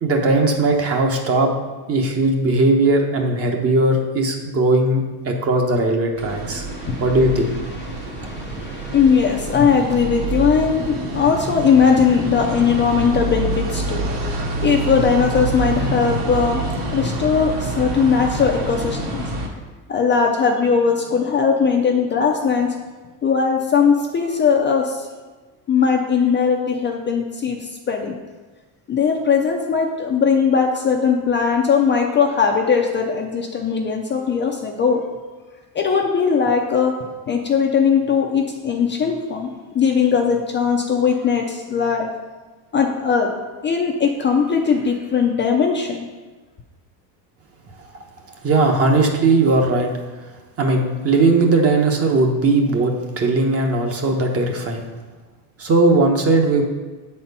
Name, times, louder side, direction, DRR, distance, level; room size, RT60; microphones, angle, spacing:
voice 1, 0.0-1.5 1.9-6.7 7.0-7.6 48.4-49.9 50.6-54.8 55.6-56.6, right 2 dB, 30° right, 2 dB, 1.0 m, -18 dB
sound 1, 6.2-19.5, right 2 dB, 55° right, 1.8 m, -26 dB
voice 2, 6.7-7.0 7.9-19.2 19.9-22.7 23.2-25.1 25.7-28.2 28.9-35.0 35.7-36.9 37.3-42.1 42.7-43.3 43.6-46.1, left 6 dB, 25° left, 1 dB, 0.5 m, -19 dB
7.8 x 4.4 x 5.4 m, 1.3 s
cardioid pair, 140°, 44 cm